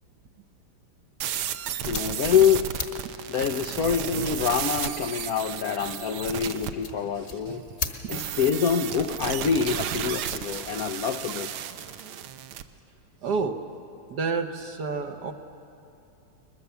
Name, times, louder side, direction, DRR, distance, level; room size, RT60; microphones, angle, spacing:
sound 1, 1.2-6.7 8.1-12.6, right 10 dB, 75° right, 1.5 m, -33 dB
sound 2, 1.3-11.0, left 4 dB, 40° left, 1.2 m, -41 dB
voice 1, 1.8-2.6 3.3-7.6 8.1-11.5, left 7 dB, 75° left, 7 dB, 0.8 m, -25 dB
voice 2, 7.2-7.6 13.2-13.6 14.1-15.3, right 4 dB, 60° right, 6 dB, 1.3 m, -29 dB
22.0 x 21.5 x 6.9 m, 2.7 s
omnidirectional pair, 2.4 m